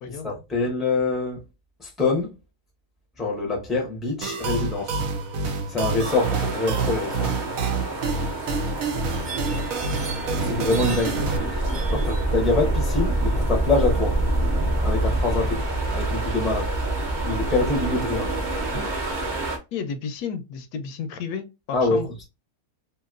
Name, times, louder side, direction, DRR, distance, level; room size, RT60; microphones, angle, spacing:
voice 1, 0.1-1.4 1.8-2.3 3.2-5.0 5.7-7.3 10.4-14.2 14.8-15.6 15.9-16.7 17.2-18.4 21.7-22.0, left 3 dB, ahead, 0.6 m, -25 dB
sound 1, 4.2-11.4, right 4 dB, 70° right, 1.0 m, -27 dB
sound 2, 6.0-19.6, right 2 dB, 45° right, 0.6 m, -26 dB
voice 2, 19.7-22.1, left 6 dB, 85° left, 1.1 m, -32 dB
2.9 x 2.9 x 2.3 m
omnidirectional pair, 1.6 m